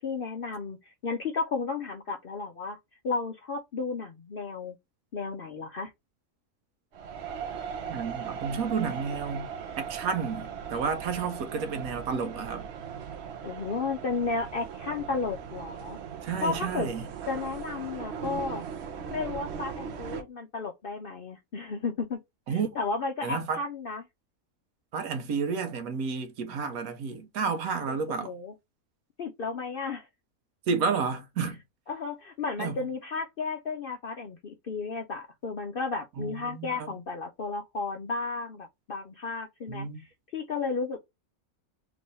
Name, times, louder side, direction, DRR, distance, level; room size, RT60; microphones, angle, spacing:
voice 1, 0.0-2.8 3.0-4.8 5.1-5.9 13.4-16.0 16.4-16.9 17.3-18.6 19.1-22.2 22.5-24.1 28.2-28.5 29.2-30.1 31.9-41.0, left 4 dB, 60° left, 0.6 m, -33 dB
sound 1, 6.9-20.2, right 7 dB, 55° right, 0.8 m, -38 dB
voice 2, 7.9-12.7 16.2-17.1 22.5-22.7 23.2-23.6 24.9-28.3 30.7-31.6 32.6-32.8 36.2-36.9 39.7-40.0, right 5 dB, 75° right, 1.3 m, -31 dB
3.4 x 3.0 x 3.9 m
omnidirectional pair, 1.5 m